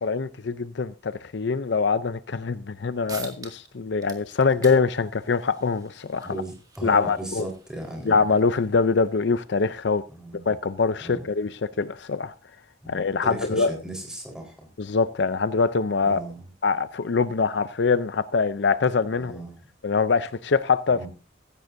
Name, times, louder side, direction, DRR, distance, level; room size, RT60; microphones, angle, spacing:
voice 1, 0.0-6.4 6.8-7.5 8.0-10.0 10.5-12.3 12.9-13.7 14.8-16.2 16.6-19.4 19.8-21.1, left 4 dB, 60° left, 0.5 m, -24 dB
sound 1, 2.7-2.8 3.1-3.7 4.0-9.1, right 4 dB, 20° right, 2.1 m, -47 dB
voice 2, 6.2-8.1 10.1-10.4 11.0-11.3 12.8-13.0 13.2-14.7 16.0-16.4 19.2-19.6 20.9-21.1, right 1 dB, 5° right, 4.1 m, -36 dB
16.0 x 15.0 x 2.6 m
head